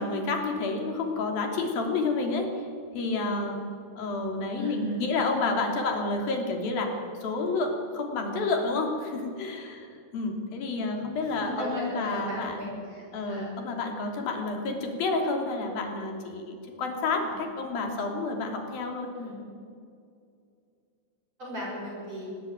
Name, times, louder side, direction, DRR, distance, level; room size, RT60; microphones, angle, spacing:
voice 1, 0.0-2.5 2.9-3.6 4.0-6.9 7.2-9.9 10.1-12.7 13.1-19.1, left 3 dB, 85° left, 3 dB, 4.9 m, -29 dB
voice 2, 4.6-5.0 11.4-13.5 17.2-17.3 19.1-19.3 21.4-22.2, equal, 40° right, -4 dB, 7.6 m, -37 dB
25.0 x 19.0 x 9.4 m, 2.4 s
omnidirectional pair, 4.1 m